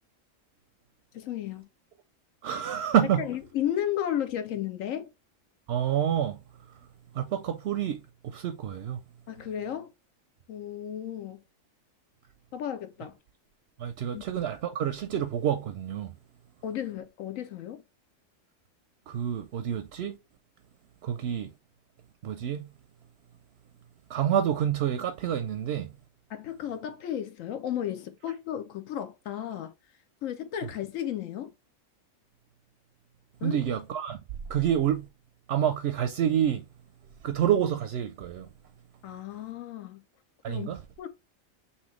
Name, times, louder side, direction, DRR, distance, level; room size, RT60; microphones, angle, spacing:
voice 1, 1.1-1.7 3.2-5.1 9.3-9.9 10.5-11.4 12.5-13.2 14.1-14.2 16.6-17.8 26.3-29.7 30.2-31.5 33.4-33.6 39.0-40.0 40.5-40.7 41.0-41.1, left 10 dB, 80° left, 1.0 m, -34 dB
voice 2, 2.4-3.2 5.7-6.4 7.1-9.0 13.8-16.1 19.1-20.2 21.0-21.5 22.2-22.7 24.1-25.9 33.4-34.2 34.5-35.1 35.5-36.6 37.2-38.5 40.4-40.8, right 9 dB, 65° right, 0.7 m, -28 dB
5.5 x 2.8 x 3.1 m
omnidirectional pair, 1.4 m